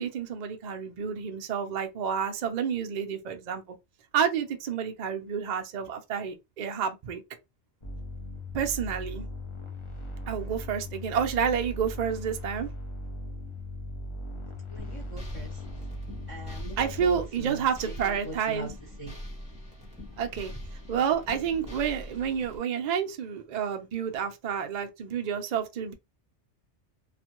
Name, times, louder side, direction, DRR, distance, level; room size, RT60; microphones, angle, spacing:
voice 1, 0.0-3.6 4.1-7.2 8.5-9.3 10.3-12.7 16.8-18.7 20.2-20.5 20.9-25.9, right 7 dB, 60° right, 0.4 m, -29 dB
sound 1, 7.8-17.3, left 1 dB, 45° left, 0.4 m, -38 dB
voice 2, 14.7-15.5 16.3-17.6 18.0-18.7 19.0-19.1, equal, 30° left, 1.0 m, -41 dB
sound 2, 14.8-22.6, equal, 5° right, 0.7 m, -43 dB
2.4 x 2.1 x 2.9 m
omnidirectional pair, 1.2 m